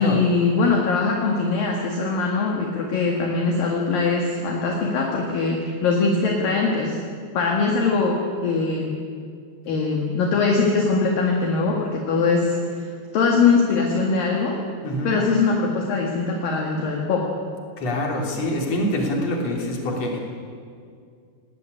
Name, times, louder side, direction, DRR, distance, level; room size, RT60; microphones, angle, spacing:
voice 1, 0.0-7.0 7.3-8.2 8.4-8.9 9.7-12.9 13.1-14.6 15.0-17.3, left 4 dB, 60° left, 0 dB, 3.4 m, -22 dB
voice 2, 14.8-15.2 17.8-20.2, left 1 dB, 40° left, 0 dB, 4.3 m, -25 dB
19.5 x 18.5 x 9.9 m, 2.2 s
omnidirectional pair, 4.9 m